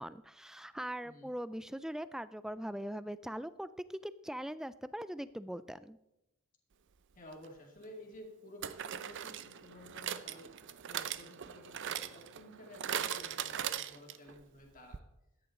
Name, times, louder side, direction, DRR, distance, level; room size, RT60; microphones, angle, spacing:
voice 1, 0.0-6.0, equal, ahead, 15 dB, 0.3 m, -41 dB
voice 2, 1.0-1.4 7.2-10.5 10.9-15.0, left 1 dB, 35° left, 0 dB, 2.3 m, -53 dB
sound 1, 7.3-7.5 8.6-14.4 14.6-14.7 14.9-15.0, right 9 dB, 55° right, 0.5 m, -40 dB
14.0 x 9.8 x 3.8 m, 0.89 s
head